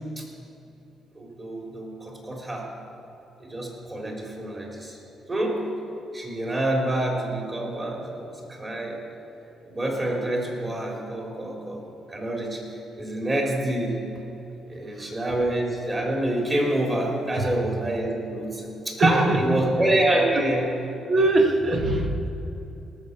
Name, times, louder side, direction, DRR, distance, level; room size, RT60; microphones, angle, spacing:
voice 1, 1.2-2.7 3.4-5.0 5.3-5.7 6.1-9.0 9.7-11.8 12.1-14.0 14.7-20.7, right 1 dB, 25° right, -1 dB, 3.7 m, -27 dB
voice 2, 19.0-19.7 20.3-20.4 21.1-22.3, right 2 dB, 45° right, 4 dB, 1.5 m, -22 dB
18.5 x 7.2 x 6.7 m, 2.9 s
cardioid pair, 90°, 0 cm